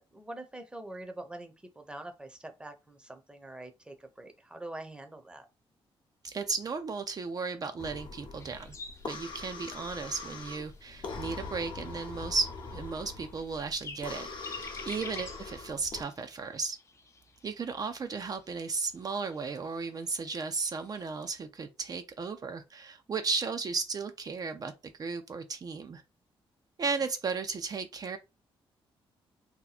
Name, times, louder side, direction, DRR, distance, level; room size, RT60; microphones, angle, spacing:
voice 1, 0.0-5.5 27.0-27.1, right 1 dB, 10° right, 0.7 m, -44 dB
voice 2, 6.2-8.7 9.1-14.6 14.8-16.8 17.4-26.0 26.8-28.2, right 4 dB, 40° right, 0.5 m, -35 dB
sound 1, 7.8-16.0, left 4 dB, 55° left, 0.9 m, -43 dB
sound 2, 8.3-21.4, left 4 dB, 30° left, 0.5 m, -51 dB
2.8 x 2.2 x 4.0 m
cardioid pair, 95°, 10 cm